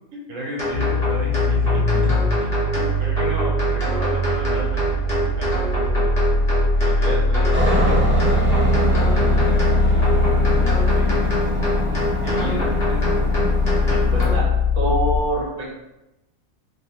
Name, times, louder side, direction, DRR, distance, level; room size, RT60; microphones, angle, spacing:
voice 1, 0.1-2.1 2.7-6.1 6.7-10.3 11.0-11.5 12.2-13.2, right 1 dB, 80° right, -2 dB, 1.0 m, -34 dB
sound 1, 0.6-14.3, left 1 dB, 35° left, 1.0 m, -27 dB
sound 2, 0.7-15.2, left 1 dB, 90° left, 1.0 m, -21 dB
Aircraft, 7.5-14.4, equal, 10° right, 0.8 m, -25 dB
voice 2, 13.9-14.5 14.7-15.7, right 1 dB, 45° right, -5 dB, 1.1 m, -25 dB
3.4 x 2.4 x 2.8 m, 0.96 s
omnidirectional pair, 1.4 m